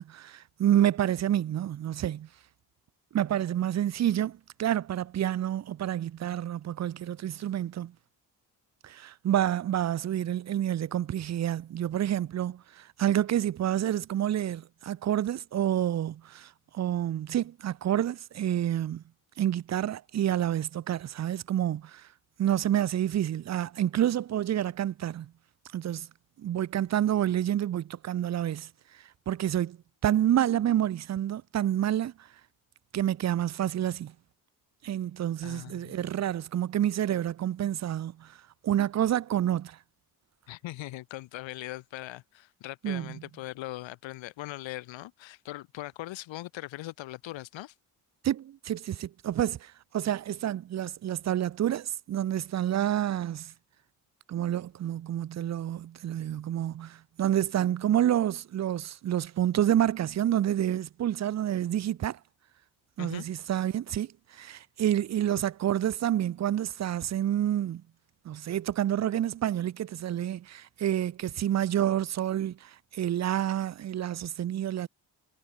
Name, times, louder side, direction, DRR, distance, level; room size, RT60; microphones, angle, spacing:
voice 1, 0.0-2.3 3.1-7.9 8.8-19.0 19.4-22.1 22.4-25.3 25.7-26.1 26.4-28.7 29.3-29.8 30.0-32.1 32.9-34.1 34.8-38.3 38.6-39.8 42.8-43.1 48.2-53.5 54.3-62.2 63.0-67.8 68.3-74.9, right 11 dB, 35° right, 0.5 m, -28 dB
voice 2, 35.4-36.1 40.5-47.7 63.0-63.3, left 16 dB, 75° left, 1.4 m, -40 dB
supercardioid pair, 55°, 46 cm